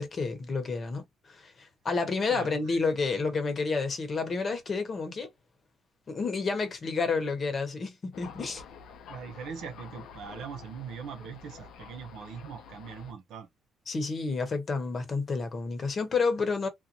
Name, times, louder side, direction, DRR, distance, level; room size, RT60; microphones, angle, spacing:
voice 1, 0.0-5.3 6.1-8.6 13.9-16.7, left 4 dB, 45° left, 0.9 m, -30 dB
voice 2, 2.3-2.8 9.1-13.5, right 7 dB, 80° right, 0.6 m, -41 dB
Thunder, 8.1-13.1, left 6 dB, 80° left, 0.6 m, -48 dB
2.6 x 2.1 x 2.7 m
cardioid pair, 90°, 0 cm